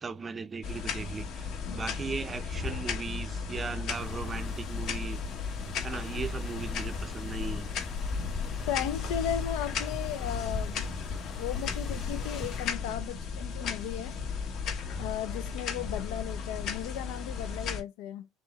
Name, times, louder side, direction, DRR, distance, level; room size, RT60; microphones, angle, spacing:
voice 1, 0.0-5.2 5.8-7.8, right 4 dB, 20° right, 0.5 m, -37 dB
sound 1, 0.6-17.8, left 6 dB, 55° left, 1.2 m, -35 dB
sound 2, 3.9-12.7, left 3 dB, 35° left, 1.7 m, -40 dB
voice 2, 8.7-10.9 11.4-14.2 15.0-18.3, left 10 dB, 85° left, 0.5 m, -35 dB
3.8 x 3.1 x 4.0 m
cardioid pair, 140°, 0 cm